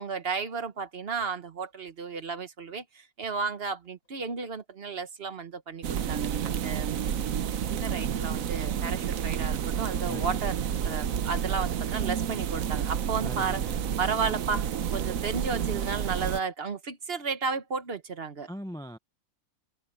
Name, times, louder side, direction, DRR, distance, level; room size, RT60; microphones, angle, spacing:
voice 1, 0.0-6.9 7.6-13.6 14.0-18.5, right 5 dB, 45° right, 1.2 m, -33 dB
sound 1, 1.2-2.1 3.2-3.5 3.8-4.4 5.5-5.6 6.7-8.0 9.9-11.8 12.5-12.9 13.3-13.4 14.6-16.0, left 2 dB, 60° left, 7.1 m, -62 dB
sound 2, 5.8-16.4, right 8 dB, 70° right, 1.2 m, -30 dB
voice 2, 10.1-10.5 13.2-14.0 18.5-19.0, equal, 5° left, 0.4 m, -41 dB
omnidirectional pair, 1.5 m